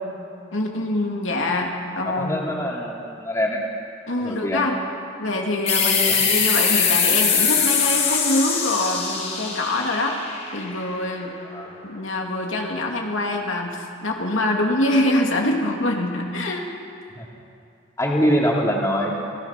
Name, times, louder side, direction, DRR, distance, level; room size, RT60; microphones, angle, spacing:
voice 1, 0.5-2.5 4.1-4.7 5.2-10.2 10.5-11.3 11.8-16.7, left 1 dB, 80° left, 0 dB, 2.6 m, -24 dB
voice 2, 2.0-3.6 4.2-4.7 6.0-6.2 11.5-11.7 17.1-17.3 18.0-19.3, equal, 15° left, -2 dB, 2.7 m, -24 dB
sound 1, 5.7-10.9, left 6 dB, 35° left, 4.1 m, -22 dB
26.0 x 17.0 x 5.9 m, 2.5 s
head